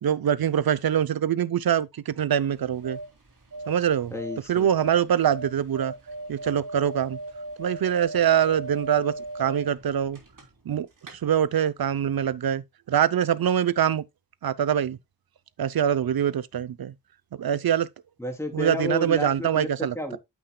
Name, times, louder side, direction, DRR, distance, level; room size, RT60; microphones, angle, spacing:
voice 1, 0.0-3.0 3.7-4.1 4.5-5.9 6.3-7.2 7.6-9.1 9.4-10.2 10.7-10.9 11.2-14.0 14.4-15.0 15.6-16.9 17.3-17.9 18.5-19.9, right 9 dB, 80° right, 0.7 m, -24 dB
sound 1, 2.5-10.7 11.0-11.1, right 2 dB, 60° right, 3.3 m, -39 dB
voice 2, 4.1-4.7 18.2-19.7 19.9-20.2, left 1 dB, 5° left, 3.4 m, -31 dB
8.7 x 8.4 x 2.2 m
cardioid pair, 45°, 36 cm